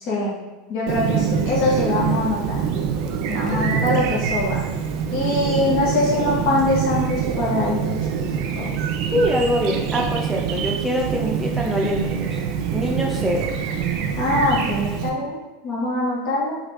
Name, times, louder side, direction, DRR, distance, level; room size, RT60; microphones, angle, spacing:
voice 1, 0.7-2.6 3.3-4.6 5.1-8.8 14.2-15.4 15.6-16.6, left 2 dB, 55° left, -5 dB, 1.0 m, -23 dB
Chirp tweet, 0.9-15.1, right 7 dB, 60° right, 0.4 m, -25 dB
voice 2, 3.5-3.9 9.1-12.4 12.7-13.5, equal, 5° right, -2 dB, 0.6 m, -24 dB
3.1 x 2.4 x 3.1 m, 1.2 s
supercardioid pair, 135°, 0 cm